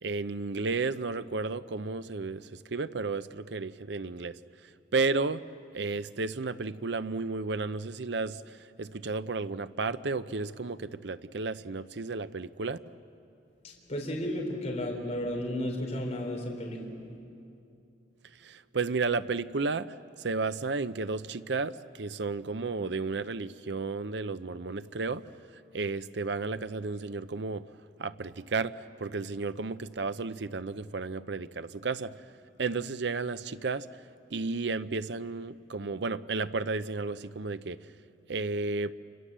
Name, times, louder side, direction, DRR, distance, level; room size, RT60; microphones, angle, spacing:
voice 1, 0.0-4.4 4.9-5.4 5.7-12.9 18.4-25.2 25.7-27.6 28.0-32.1 32.6-33.9 34.3-37.9 38.3-38.9, right 3 dB, 70° right, 13 dB, 0.7 m, -33 dB
voice 2, 13.6-16.8, left 1 dB, 40° left, -1 dB, 4.1 m, -33 dB
29.0 x 26.5 x 7.5 m, 2.7 s
head